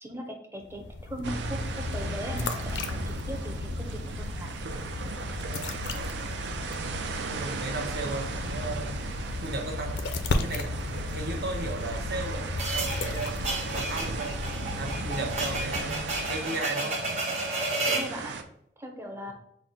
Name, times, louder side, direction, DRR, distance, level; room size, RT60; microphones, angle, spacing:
voice 1, 0.0-4.5 17.9-18.3 18.8-19.3, equal, 15° right, 3 dB, 0.6 m, -39 dB
sound 1, 0.6-16.5, left 2 dB, 85° left, 0.5 m, -35 dB
sound 2, 1.2-18.4, right 4 dB, 90° right, 0.5 m, -37 dB
voice 2, 5.4-6.5 6.8-10.1 10.4-10.8 11.0-14.4 14.7-17.0, right 2 dB, 65° right, 1 dB, 0.9 m, -36 dB
sound 3, 12.6-18.1, right 2 dB, 40° right, 0.9 m, -32 dB
5.8 x 2.1 x 3.9 m, 0.75 s
head